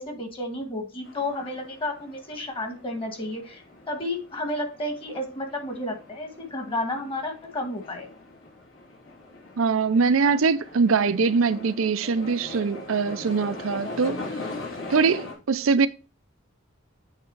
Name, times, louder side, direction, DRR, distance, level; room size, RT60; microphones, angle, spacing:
voice 1, 0.0-3.6 3.9-8.1, left 1 dB, 25° left, 1.5 m, -32 dB
sound 1, 1.0-15.3, left 2 dB, 80° left, 3.7 m, -41 dB
voice 2, 9.6-14.2 14.9-15.9, right 5 dB, 80° right, 0.5 m, -22 dB
8.6 x 3.6 x 4.5 m
head